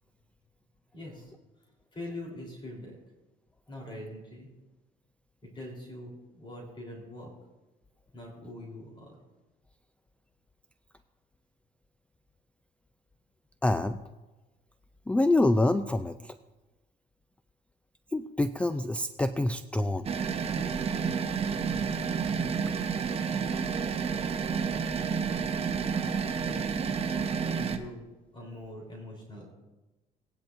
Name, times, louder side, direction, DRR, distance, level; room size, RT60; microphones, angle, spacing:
voice 1, 0.9-1.3 1.9-3.0 3.7-4.5 5.4-7.3 8.1-9.2 26.4-27.3 27.6-29.5, left 1 dB, 30° left, -1 dB, 3.7 m, -43 dB
voice 2, 13.6-14.0 15.1-16.3 18.1-20.0, left 2 dB, 5° left, 10 dB, 0.3 m, -26 dB
sound 1, 20.0-27.8, right 6 dB, 35° right, 0.9 m, -30 dB
17.0 x 10.0 x 2.6 m, 1.1 s
cardioid pair, 110°, 17 cm